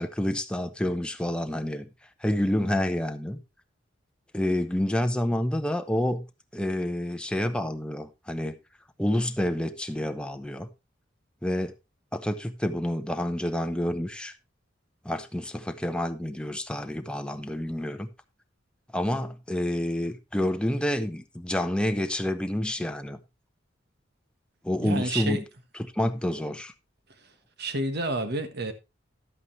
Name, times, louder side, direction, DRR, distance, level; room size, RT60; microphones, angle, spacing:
voice 1, 0.0-1.9 2.2-3.4 4.3-6.2 6.5-8.6 9.0-10.7 11.4-11.7 12.1-14.3 15.0-18.1 18.9-23.2 24.6-25.4 25.7-26.7, left 1 dB, 5° left, 0.7 m, -28 dB
voice 2, 24.8-25.4 27.6-28.7, right 1 dB, 60° right, 1.4 m, -29 dB
11.0 x 8.4 x 3.2 m
head